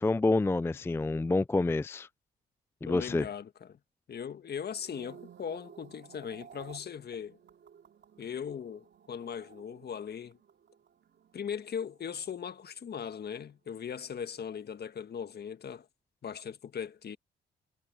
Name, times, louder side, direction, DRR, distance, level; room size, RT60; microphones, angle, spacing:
voice 1, 0.0-2.1 2.8-3.3, left 2 dB, 10° left, 0.4 m, -28 dB
voice 2, 2.9-3.8 4.1-7.4 8.2-10.4 11.3-15.8 16.2-17.2, left 7 dB, 50° left, 1.7 m, -39 dB
sound 1, 4.6-13.1 13.3-13.7, right 8 dB, 55° right, 3.6 m, -55 dB
supercardioid pair, 55°, 21 cm